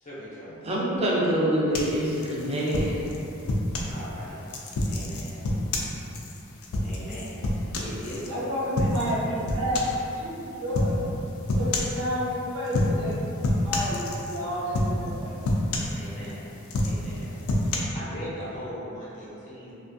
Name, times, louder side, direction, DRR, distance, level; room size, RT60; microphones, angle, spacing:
voice 1, 0.0-0.5 3.9-4.4 4.9-5.4 6.8-8.9 15.9-16.5 16.8-19.7, equal, 35° left, -8 dB, 0.6 m, -40 dB
voice 2, 0.6-3.0, right 1 dB, 30° right, -6 dB, 0.4 m, -25 dB
sound 1, 1.7-4.0 4.5-8.3 8.8-9.2 9.5-10.0 10.7-11.0 11.5-12.0 12.7-13.1 13.4-14.4 14.7-15.1 15.4-16.3 16.7-17.8, left 1 dB, 80° left, 0.4 m, -27 dB
voice 3, 8.3-11.0 11.5-13.2 13.6-15.3, left 1 dB, 75° right, -7 dB, 0.7 m, -30 dB
2.4 x 2.3 x 2.5 m, 2.9 s
head